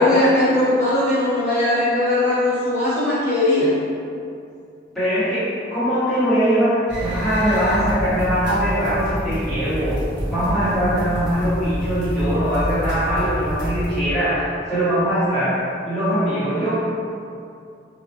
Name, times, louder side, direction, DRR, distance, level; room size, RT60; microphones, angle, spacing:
voice 1, 0.0-3.7 16.5-16.8, left 1 dB, 35° left, -12 dB, 1.0 m, -19 dB
voice 2, 4.9-10.0 10.3-16.8, equal, ahead, -15 dB, 1.1 m, -21 dB
sound 1, 6.9-14.0, equal, 65° right, 1.1 m, -27 dB
3.0 x 2.3 x 2.8 m, 2.4 s
head